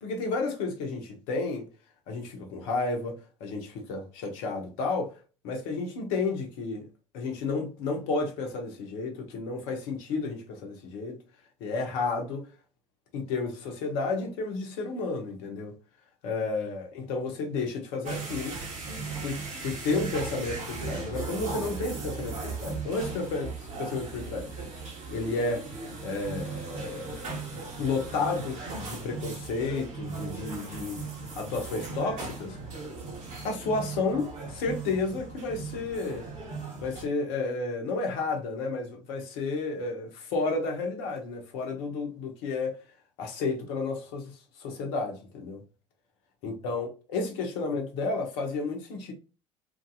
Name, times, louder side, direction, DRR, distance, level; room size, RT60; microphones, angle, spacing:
voice 1, 0.0-1.6 2.1-5.1 5.4-6.9 7.1-11.2 11.6-12.5 13.1-15.7 16.2-18.6 18.9-24.5 25.1-25.7 26.0-27.2 27.8-31.1 31.4-32.6 33.4-36.3 36.8-42.8 43.2-44.3 44.6-45.6 46.4-49.1, left 3 dB, 65° left, 1.0 m, -32 dB
sound 1, 18.0-37.0, right 4 dB, 50° right, 1.4 m, -37 dB
3.1 x 2.6 x 2.6 m
figure-of-eight pair, 65°, 16 cm